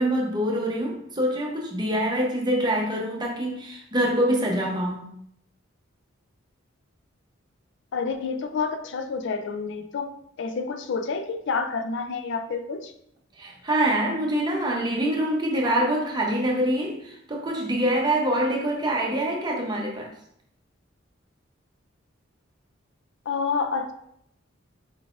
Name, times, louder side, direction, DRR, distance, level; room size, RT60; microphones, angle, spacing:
voice 1, 0.0-5.1 13.4-20.1, right 1 dB, 20° right, 0 dB, 0.7 m, -25 dB
voice 2, 7.9-10.1 10.4-12.9 23.3-23.9, left 5 dB, 60° left, 7 dB, 0.4 m, -28 dB
4.7 x 3.8 x 2.5 m, 0.71 s
head